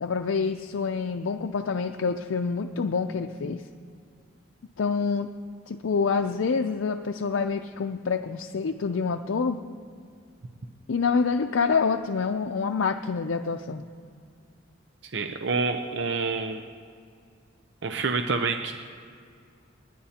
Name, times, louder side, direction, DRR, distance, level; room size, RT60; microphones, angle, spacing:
voice 1, 0.0-3.6 4.8-5.3 5.7-9.6 10.9-13.9, left 5 dB, 85° left, 5 dB, 0.5 m, -27 dB
voice 2, 15.1-16.7 17.8-18.7, right 4 dB, 60° right, 6 dB, 0.6 m, -27 dB
29.5 x 10.0 x 2.9 m, 2.3 s
head